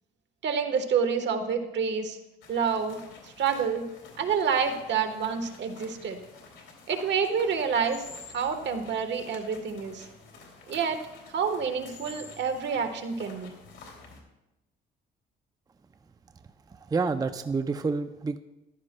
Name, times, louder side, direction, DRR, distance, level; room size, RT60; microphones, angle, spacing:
voice 1, 0.4-2.2 2.5-3.0 3.4-3.8 4.2-6.2 6.9-8.0 8.3-10.0 10.7-11.0 11.3-13.5, right 6 dB, 65° right, 7 dB, 1.2 m, -28 dB
sound 1, 2.4-14.2, left 4 dB, 75° left, 2.7 m, -49 dB
voice 2, 16.7-18.4, right 4 dB, 20° right, 10 dB, 0.4 m, -29 dB
14.5 x 12.5 x 2.2 m, 0.93 s
cardioid pair, 90°, 20 cm